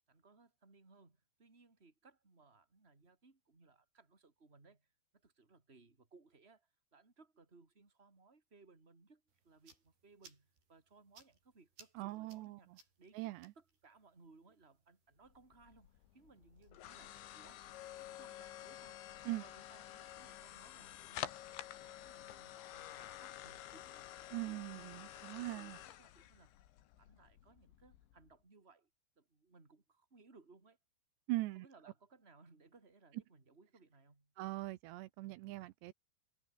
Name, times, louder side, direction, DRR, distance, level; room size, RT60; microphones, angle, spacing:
voice 1, 0.1-4.9 5.2-17.6 18.0-19.0 19.3-21.5 21.8-24.1 24.4-26.5 27.0-28.9 29.2-30.8 31.6-34.3, right 3 dB, 15° right, 3.5 m, -65 dB
sound 1, 9.3-16.7, right 5 dB, 60° right, 8.9 m, -67 dB
voice 2, 12.0-12.8 13.1-13.5 19.3-19.4 24.3-25.8 31.3-31.7 34.4-35.9, right 18 dB, 80° right, 2.9 m, -41 dB
sound 2, 15.3-28.3, left 13 dB, 90° left, 4.1 m, -50 dB
omnidirectional pair, 5.1 m